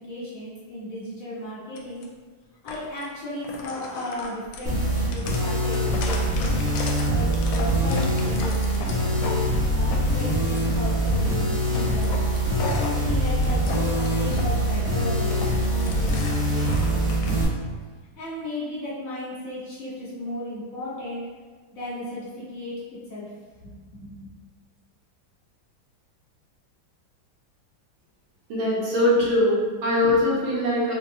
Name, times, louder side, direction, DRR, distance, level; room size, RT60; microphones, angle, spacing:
voice 1, 0.0-2.0 2.6-6.5 7.1-12.1 13.0-17.5 18.1-21.3 21.7-22.8 23.1-23.3 23.6-23.7 24.0-24.2, left 1 dB, 45° left, -9 dB, 1.5 m, -35 dB
sound 1, 1.8-2.1 2.7-3.1 3.4-9.4 9.7-10.7 11.2-11.5 11.7-14.4 14.8-17.3, left 3 dB, 80° left, 1.3 m, -36 dB
sound 2, 4.6-17.4, equal, 5° right, 0.6 m, -24 dB
voice 2, 28.5-30.9, left 1 dB, 85° right, -7 dB, 1.8 m, -22 dB
4.1 x 2.6 x 2.8 m, 1.4 s
omnidirectional pair, 2.2 m